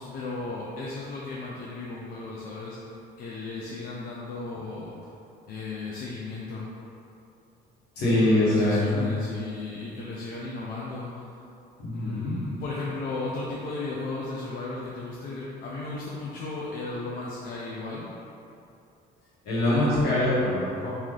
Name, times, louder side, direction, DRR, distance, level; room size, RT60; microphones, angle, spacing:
voice 1, 0.0-2.8 3.2-5.0 5.5-6.7 8.0-11.2 11.9-18.1, left 3 dB, 60° left, -5 dB, 0.5 m, -35 dB
voice 2, 8.0-9.1 11.8-12.4 19.4-20.9, left 1 dB, 75° left, -9 dB, 1.4 m, -23 dB
3.1 x 2.7 x 3.8 m, 2.7 s
cardioid pair, 110°, 17 cm